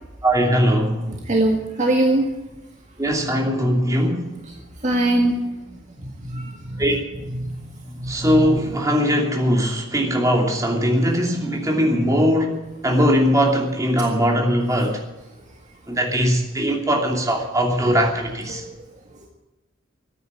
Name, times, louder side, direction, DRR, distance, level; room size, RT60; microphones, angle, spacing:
voice 1, 0.2-1.1 3.0-4.3 6.8-7.0 8.1-12.5 12.8-15.0 15.9-18.6, equal, 15° right, 0 dB, 2.8 m, -20 dB
voice 2, 1.3-2.2 4.8-5.3 6.2-6.8 7.4-7.7 8.0-8.6, right 1 dB, 35° right, 1 dB, 1.8 m, -21 dB
14.0 x 9.8 x 9.7 m, 1.1 s
head